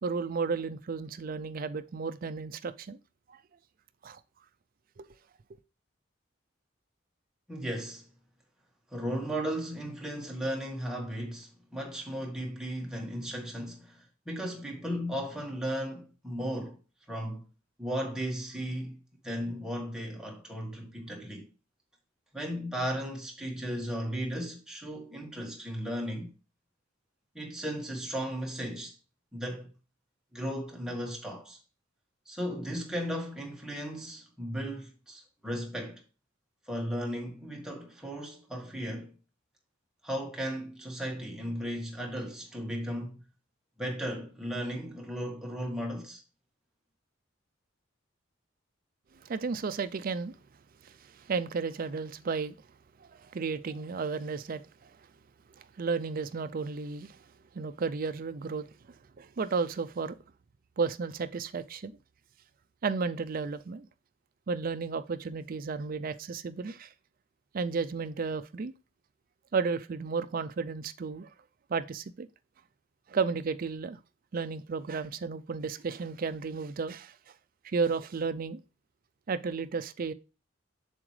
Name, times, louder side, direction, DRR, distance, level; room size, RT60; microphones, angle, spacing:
voice 1, 0.0-3.0 3.3-3.4 4.0-4.2 5.0-5.1 5.5-5.6 49.2-50.3 50.8-52.5 53.0-54.9 55.6-57.2 57.5-58.7 59.2-60.2 60.8-61.9 62.8-63.9 64.5-66.9 67.5-68.7 69.5-71.3 71.7-72.3 73.1-74.0 74.3-77.1 77.6-78.6 79.3-80.1, right 5 dB, 45° right, 0.4 m, -33 dB
voice 2, 7.5-8.1 8.9-16.8 17.1-17.5 17.8-19.0 19.2-21.5 22.3-26.3 27.3-28.9 29.3-29.7 30.3-31.6 32.2-36.0 36.7-39.1 40.0-43.2 43.8-46.2, equal, 5° right, 1.6 m, -35 dB
7.4 x 7.0 x 3.2 m
head